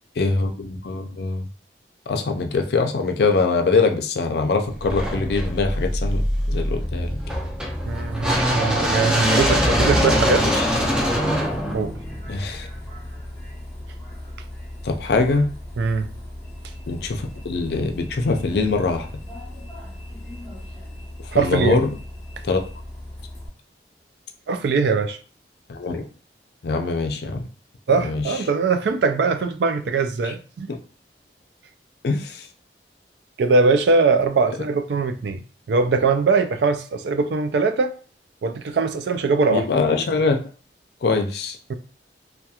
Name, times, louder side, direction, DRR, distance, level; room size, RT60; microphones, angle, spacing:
voice 1, 0.2-1.4 2.1-6.2 6.5-7.2 10.4-10.6 12.3-12.7 14.8-15.5 16.9-19.1 21.3-21.9 22.4-22.6 25.7-26.1 26.6-27.5 28.0-28.2 30.2-30.3 30.7-30.8 32.0-32.5 34.5-34.6 39.5-40.4 41.0-41.6, left 3 dB, 65° left, 0.4 m, -23 dB
sound 1, 4.8-12.9, equal, 5° right, 0.5 m, -23 dB
Bus, 7.9-23.5, left 1 dB, 15° left, 1.0 m, -37 dB
voice 2, 7.9-10.5 11.7-11.9 15.8-16.1 21.3-21.8 24.5-25.2 27.9-30.7 33.4-35.4 35.7-37.9 38.4-39.6 41.7-41.8, right 4 dB, 75° right, 0.3 m, -21 dB
2.8 x 2.2 x 2.3 m
head